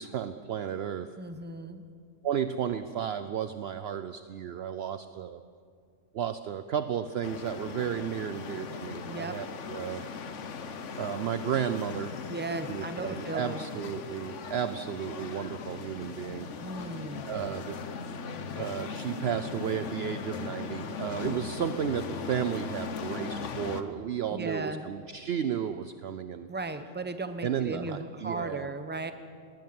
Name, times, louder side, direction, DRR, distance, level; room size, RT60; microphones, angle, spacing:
voice 1, 0.0-1.1 2.2-5.4 6.1-10.1 11.0-12.2 12.7-16.5 17.3-17.8 18.5-26.5 27.4-28.7, right 9 dB, 60° right, 11 dB, 0.8 m, -33 dB
voice 2, 1.2-1.8 9.0-9.4 12.3-13.6 16.6-17.3 24.3-24.9 26.5-29.1, right 2 dB, 10° right, 9 dB, 0.9 m, -36 dB
sound 1, 7.2-23.8, left 5 dB, 65° left, 1.3 m, -39 dB
19.5 x 18.5 x 7.8 m, 2.2 s
omnidirectional pair, 1.3 m